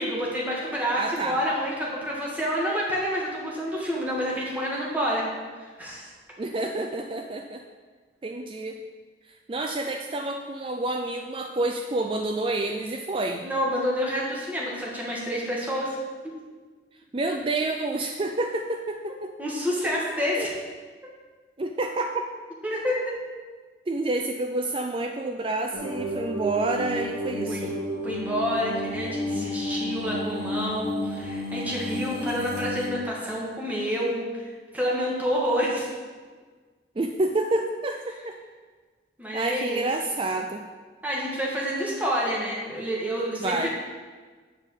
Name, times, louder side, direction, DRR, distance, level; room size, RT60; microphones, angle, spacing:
voice 1, 0.0-5.3 5.6-6.1 13.4-16.0 19.4-20.5 21.0-21.1 22.6-23.2 27.4-27.7 28.0-35.9 39.2-39.8 41.0-43.7, equal, 10° right, -4 dB, 1.6 m, -28 dB
voice 2, 0.9-1.4 6.4-7.6 8.2-8.8 9.5-13.4 17.1-19.3 20.4-20.5 21.6-22.3 23.9-27.8 37.0-38.4 39.3-40.6 43.4-43.7, right 2 dB, 30° right, 4 dB, 0.4 m, -28 dB
sound 1, 25.7-32.9, left 1 dB, 65° right, 2.6 m, -31 dB
8.9 x 4.4 x 7.1 m, 1.5 s
head